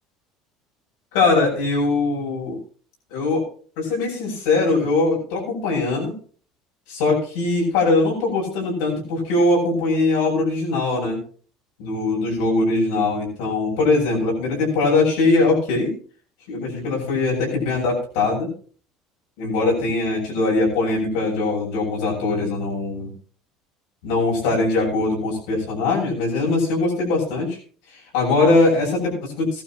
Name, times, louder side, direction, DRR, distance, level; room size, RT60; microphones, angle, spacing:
voice 1, 1.1-2.6 3.1-3.5 3.8-6.1 6.9-11.2 11.8-15.9 16.5-18.5 19.4-23.1 24.0-27.6 27.9-29.6, left 3 dB, 85° left, -2 dB, 7.5 m, -21 dB
17.5 x 12.0 x 3.1 m, 0.41 s
cardioid pair, 180°, 0 cm